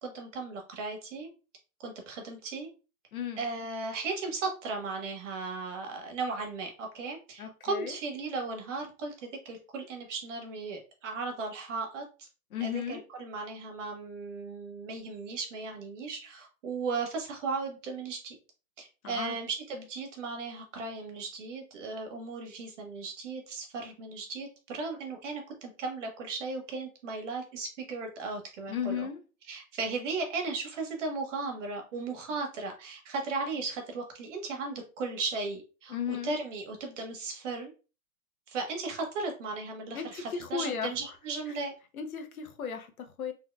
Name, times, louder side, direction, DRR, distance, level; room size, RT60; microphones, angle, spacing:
voice 1, 0.0-1.3 1.8-2.7 3.4-12.3 12.6-18.4 18.8-29.1 29.5-37.7 38.5-41.7, right 3 dB, 60° right, 3 dB, 1.4 m, -36 dB
voice 2, 3.1-3.4 7.4-7.9 12.5-13.0 19.0-19.3 28.7-29.2 35.9-36.3 39.9-40.9 41.9-43.3, left 7 dB, 85° left, 6 dB, 0.9 m, -35 dB
3.7 x 3.4 x 2.2 m, 0.33 s
hypercardioid pair, 155°, 41 cm